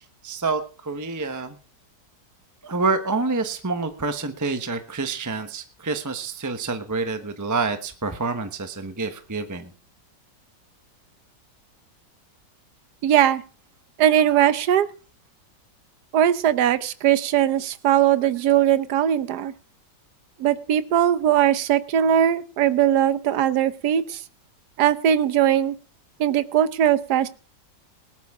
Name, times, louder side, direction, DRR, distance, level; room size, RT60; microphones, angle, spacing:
voice 1, 0.2-1.6 2.6-9.7, right 4 dB, 15° right, 8 dB, 0.8 m, -27 dB
voice 2, 13.0-13.4 14.0-14.9 16.1-19.5 20.4-24.2 24.8-25.7 26.2-27.3, right 10 dB, 65° right, 13 dB, 1.4 m, -20 dB
19.0 x 12.5 x 3.6 m, 0.37 s
omnidirectional pair, 2.0 m